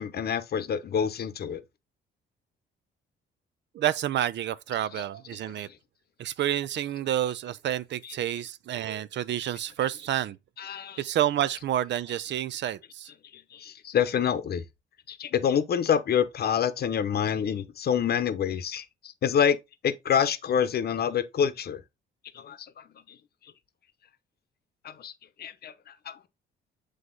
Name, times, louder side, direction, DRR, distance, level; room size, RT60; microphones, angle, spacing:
voice 1, 0.0-1.6 10.6-11.0 13.3-14.6 15.1-18.8 19.2-19.6 19.8-21.8 22.3-22.6 25.0-25.1 25.4-25.7 26.1-26.2, left 8 dB, 55° left, 0.8 m, -26 dB
voice 2, 3.7-5.7 6.2-10.4 11.0-13.1, right 11 dB, 65° right, 0.5 m, -29 dB
7.8 x 3.3 x 3.8 m
cardioid pair, 90°, 20 cm